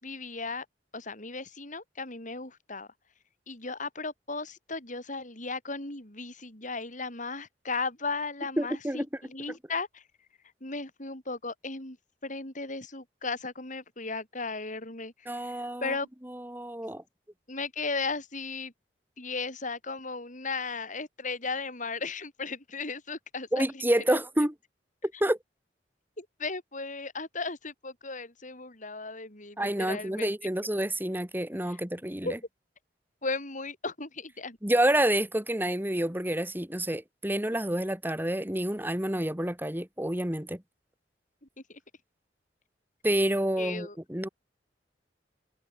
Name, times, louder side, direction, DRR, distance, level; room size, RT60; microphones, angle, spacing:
voice 1, 0.0-0.7 0.9-2.9 3.5-10.0 10.6-12.0 12.2-16.1 17.5-18.7 19.2-23.8 24.1-24.2 26.2-30.3 31.7-31.8 32.2-32.3 33.2-34.6 41.7-41.8 43.6-44.0, left 3 dB, 45° left, 7.4 m, -36 dB
voice 2, 8.6-9.1 15.3-15.9 16.2-17.0 23.5-24.5 25.0-25.4 29.6-32.4 34.6-40.6 43.0-44.3, right 1 dB, 10° right, 2.7 m, -28 dB
head